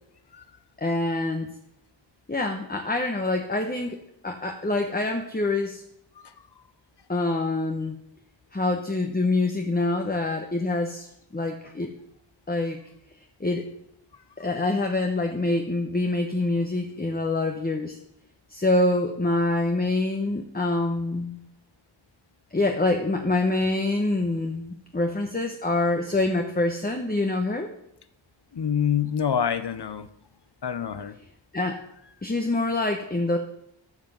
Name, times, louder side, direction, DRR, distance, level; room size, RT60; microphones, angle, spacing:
voice 1, 0.8-1.5 2.3-5.8 7.1-8.0 8.5-11.1 11.3-11.9 12.5-12.8 13.4-13.7 14.4-18.0 18.5-21.4 22.5-27.7 31.5-31.8 32.2-33.4, left 2 dB, 20° left, 3 dB, 1.0 m, -25 dB
voice 2, 28.5-30.1 30.6-31.2, left 8 dB, 55° left, 13 dB, 0.8 m, -27 dB
13.5 x 5.7 x 5.5 m, 0.78 s
wide cardioid pair, 50°, 47 cm